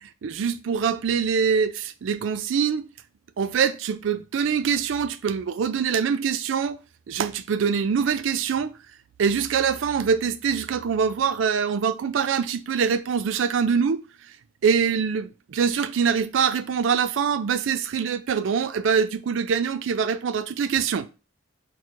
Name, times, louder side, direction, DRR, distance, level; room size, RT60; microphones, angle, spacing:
voice 1, 0.0-2.9 3.4-6.8 7.1-8.7 9.2-14.0 14.6-21.1, right 6 dB, 80° right, 0.4 m, -24 dB
4.3 x 3.1 x 2.5 m
head